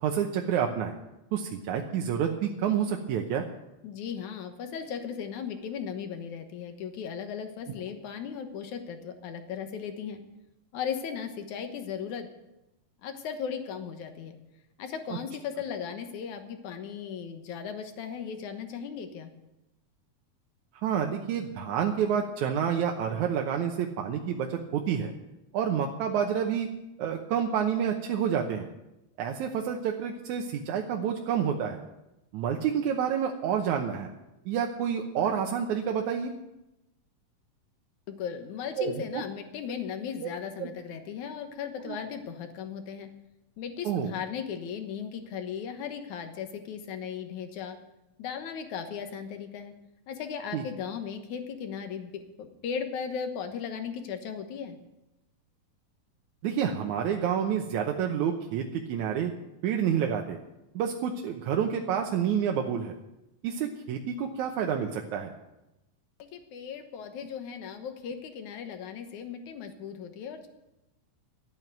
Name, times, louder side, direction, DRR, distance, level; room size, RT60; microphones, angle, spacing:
voice 1, 0.0-0.9 1.3-3.5 20.8-25.1 25.5-26.7 27.0-28.7 29.2-31.8 32.3-34.1 34.5-36.3 38.8-39.2 40.2-40.3 40.6-40.7 41.9-42.0 43.9-44.1 50.5-50.6 56.4-59.3 59.6-60.4 60.8-62.9 63.4-65.3, right 8 dB, 70° right, 2 dB, 2.1 m, -28 dB
voice 2, 3.8-10.2 10.7-12.3 13.0-14.4 14.8-19.3 38.1-43.1 43.6-47.8 48.2-49.7 50.1-54.8 66.2-70.5, left 7 dB, 65° left, 7 dB, 2.5 m, -37 dB
12.5 x 9.2 x 9.2 m, 0.93 s
omnidirectional pair, 3.9 m